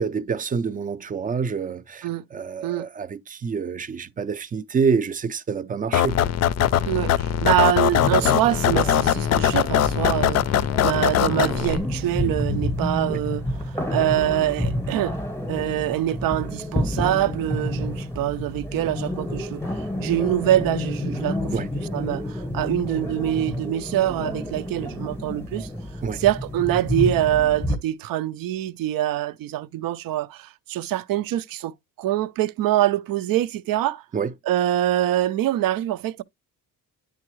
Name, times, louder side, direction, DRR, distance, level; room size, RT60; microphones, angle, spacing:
voice 1, 0.0-6.3 13.1-13.2 21.5-21.7 26.0-26.2 34.1-34.3, right 5 dB, 25° right, 0.4 m, -27 dB
sound 1, 5.9-11.8, left 11 dB, 50° left, 0.4 m, -21 dB
voice 2, 6.9-15.2 15.5-19.6 20.0-25.7 26.1-34.0 34.5-36.2, right 12 dB, 80° right, 0.6 m, -24 dB
sound 2, 7.9-27.8, left 1 dB, 5° left, 0.8 m, -29 dB
9.7 x 3.7 x 3.1 m
cardioid pair, 160°, 34 cm